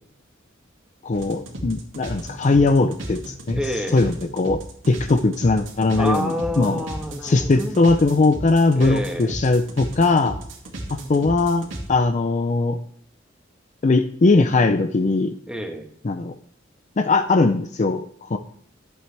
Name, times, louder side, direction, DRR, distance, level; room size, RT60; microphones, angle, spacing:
voice 1, 1.0-3.6 3.9-6.8 7.2-10.4 11.1-12.8 13.8-15.3 16.0-16.3 17.0-18.4, left 3 dB, 40° left, 8 dB, 0.5 m, -20 dB
sound 1, 1.1-11.9, right 1 dB, 70° right, 2.2 m, -34 dB
voice 2, 3.6-4.2 5.9-7.8 8.8-9.4 15.5-15.9, equal, 5° right, 4 dB, 1.2 m, -28 dB
12.0 x 7.9 x 3.3 m, 0.62 s
head